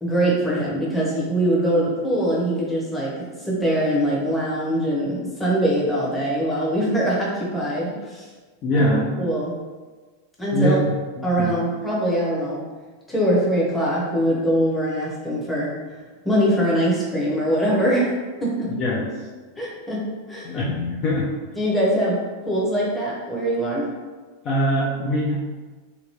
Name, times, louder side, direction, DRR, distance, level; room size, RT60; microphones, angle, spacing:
voice 1, 0.0-8.3 8.7-8.9 9.2-9.5 10.4-10.8 11.2-12.6 13.1-15.7 16.2-18.1 18.4-18.7 19.6-20.5 21.6-23.9, right 1 dB, 5° left, -6 dB, 1.0 m, -22 dB
voice 2, 8.6-9.1 10.5-10.8 11.2-11.6 18.8-19.1 20.4-21.3 24.4-25.3, equal, 35° left, -5 dB, 0.5 m, -22 dB
2.8 x 2.7 x 2.9 m, 1.3 s
figure-of-eight pair, 90°, 0 cm